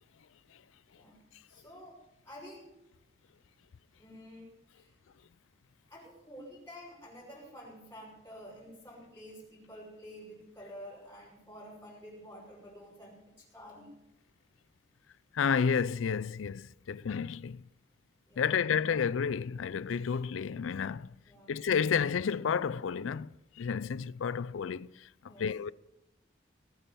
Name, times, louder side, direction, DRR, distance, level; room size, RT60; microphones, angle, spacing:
voice 1, 0.9-2.8 4.0-4.9 5.9-13.9 18.3-18.7 21.2-21.6 25.2-25.6, equal, 10° left, 5.5 m, -50 dB
voice 2, 15.3-17.6 18.4-21.2 21.5-23.3 23.6-25.7, left 6 dB, 90° left, 0.4 m, -31 dB
19.0 x 9.0 x 6.9 m
head